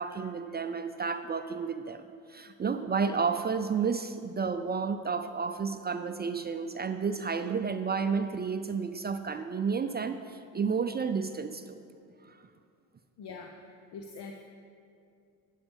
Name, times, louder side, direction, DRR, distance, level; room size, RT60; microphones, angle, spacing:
voice 1, 0.0-11.8 12.2-12.4, right 5 dB, 25° right, 8 dB, 0.4 m, -31 dB
voice 2, 13.2-14.4, left 4 dB, 65° left, 2 dB, 0.9 m, -44 dB
12.0 x 9.2 x 3.5 m, 2.4 s
hypercardioid pair, 55°, 44 cm